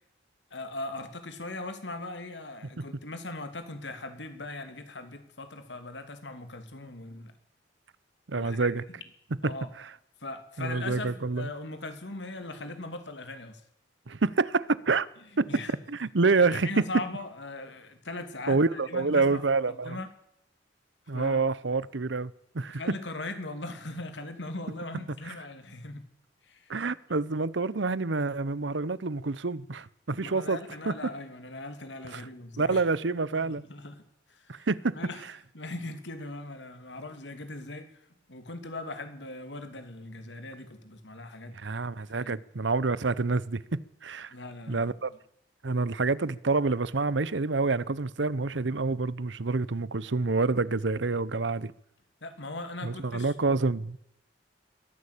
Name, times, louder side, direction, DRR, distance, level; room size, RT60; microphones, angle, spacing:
voice 1, 0.5-7.3 8.3-8.7 9.4-9.7 10.2-13.6 15.3-15.8 16.4-19.4 19.8-20.1 21.1-21.4 22.7-26.1 26.4-26.8 30.2-32.8 33.4-34.0 34.3-34.7 34.9-35.2 35.5-41.6 42.1-42.4 44.3-44.9 52.2-53.3, left 2 dB, 75° left, 2.9 m, -40 dB
voice 2, 8.3-8.8 9.4-9.5 10.6-11.5 14.1-15.1 15.4-15.5 15.9-16.8 18.5-20.0 21.1-22.8 26.7-30.6 30.9-31.0 32.1-32.2 32.6-33.6 34.5-35.0 41.5-44.3 44.7-45.1 45.6-51.7 52.8-54.0, right 3 dB, 85° right, 0.9 m, -27 dB
22.0 x 14.5 x 8.4 m
head